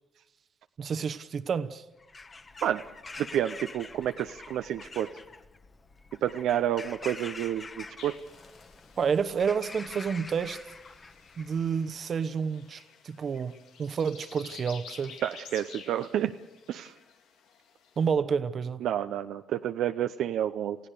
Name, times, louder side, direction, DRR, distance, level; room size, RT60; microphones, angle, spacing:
voice 1, 0.8-1.8 9.0-10.6 11.4-15.2 18.0-18.8, right 6 dB, 50° right, 1.0 m, -29 dB
Bird vocalization bird call bird song / Crow, 2.0-11.9, left 3 dB, 35° left, 1.5 m, -46 dB
voice 2, 3.2-5.1 6.2-8.2 15.2-16.3 16.7-16.9 18.8-20.8, right 11 dB, 80° right, 0.6 m, -29 dB
sound 1, 8.0-18.1, left 6 dB, 90° left, 2.0 m, -51 dB
28.5 x 16.0 x 6.8 m
cardioid pair, 90°, 0 cm